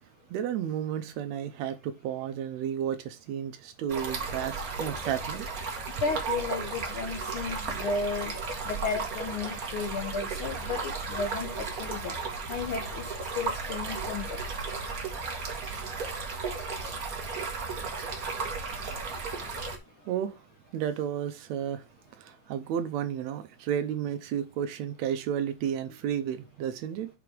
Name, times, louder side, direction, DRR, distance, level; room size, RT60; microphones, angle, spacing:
voice 1, 0.3-5.5 6.3-6.4 18.7-19.1 20.1-20.4 20.7-21.8 22.2-27.1, right 9 dB, 75° right, 1.9 m, -32 dB
Stream, 3.9-19.8, right 4 dB, 45° right, 1.2 m, -35 dB
voice 2, 6.0-8.3 8.7-12.1 12.5-13.0 13.3-14.4, left 4 dB, 70° left, 1.2 m, -33 dB
5.9 x 4.8 x 5.0 m
omnidirectional pair, 3.4 m